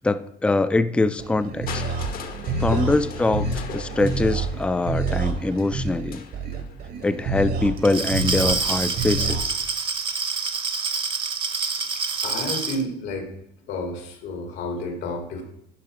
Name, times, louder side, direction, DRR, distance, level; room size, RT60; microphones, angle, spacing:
voice 1, 0.0-1.8 2.6-3.5 3.7-6.2 7.0-9.6, left 2 dB, 5° left, 13 dB, 0.4 m, -23 dB
sound 1, 1.2-9.4, right 3 dB, 65° right, 1.5 m, -28 dB
Crushing, 1.7-7.6 8.5-8.6, left 7 dB, 60° left, 1.0 m, -41 dB
Glass, 7.8-12.8, right 4 dB, 30° right, 0.9 m, -27 dB
voice 2, 11.7-13.3 13.7-15.4, left 2 dB, 85° left, 4 dB, 2.1 m, -31 dB
10.5 x 5.0 x 4.8 m, 0.82 s
cardioid pair, 110°, 17 cm